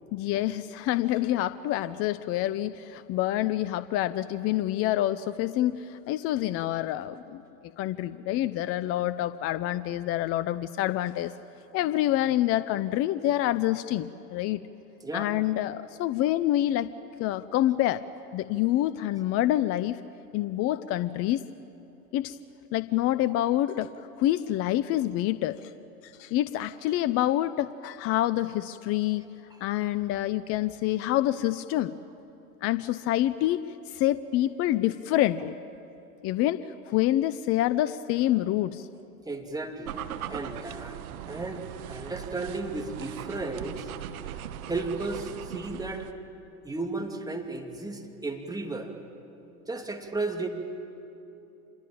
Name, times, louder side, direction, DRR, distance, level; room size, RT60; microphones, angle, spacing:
voice 1, 0.1-7.4 7.8-11.3 11.7-14.6 15.1-16.9 17.2-18.0 18.3-20.0 20.3-21.5 22.1-22.4 22.7-23.9 24.2-25.6 26.0-29.2 29.6-31.9 32.6-33.6 33.9-35.6 36.2-38.9, left 14 dB, 30° left, 15 dB, 0.6 m, -27 dB
voice 2, 39.2-40.0 40.3-43.9 44.7-46.1 46.6-48.9 49.7-50.5, right 3 dB, 10° right, 3 dB, 2.7 m, -34 dB
sound 1, 39.9-46.1, right 10 dB, 70° right, 1.3 m, -39 dB
26.5 x 22.0 x 8.7 m, 3.0 s
hypercardioid pair, 100°, 45 cm